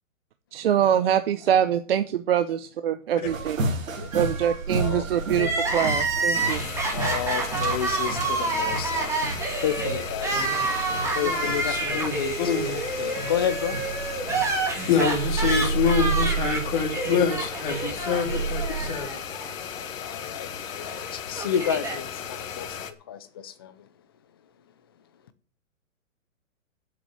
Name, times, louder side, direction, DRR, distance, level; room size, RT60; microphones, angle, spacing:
voice 1, 0.5-3.6 4.1-6.6, right 10 dB, 45° right, 0.8 m, -24 dB
sound 1, 3.2-19.0, right 3 dB, 75° right, 3.4 m, -32 dB
voice 2, 5.3-5.8 6.9-9.1 9.6-10.5 11.2-13.8 17.8-17.9 20.0-23.9, left 9 dB, 20° left, 0.5 m, -31 dB
Crying sobbing, 5.3-19.5 19.8-19.9 20.8-22.0, right 3 dB, 5° right, 1.7 m, -28 dB
sound 2, 6.3-22.9, left 7 dB, 70° left, 1.6 m, -36 dB
voice 3, 11.2-12.1 12.4-12.8 14.9-19.2, left 6 dB, 40° left, 2.9 m, -26 dB
8.3 x 8.0 x 9.0 m
hypercardioid pair, 160°, 40 cm